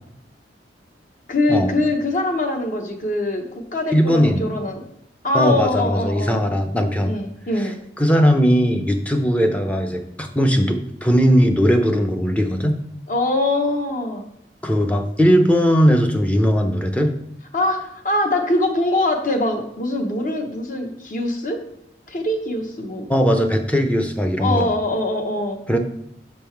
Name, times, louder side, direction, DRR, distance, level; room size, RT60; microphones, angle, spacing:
voice 1, 1.3-3.4 3.7-4.9 5.2-6.4 7.0-7.8 13.1-14.2 17.5-21.6 22.1-23.1 24.4-25.6, left 2 dB, 45° left, 4 dB, 0.9 m, -23 dB
voice 2, 3.9-4.4 5.3-7.1 8.0-12.8 14.6-17.1 23.1-24.7 25.7-25.8, equal, 10° left, 5 dB, 0.5 m, -18 dB
5.5 x 5.4 x 4.5 m, 0.75 s
head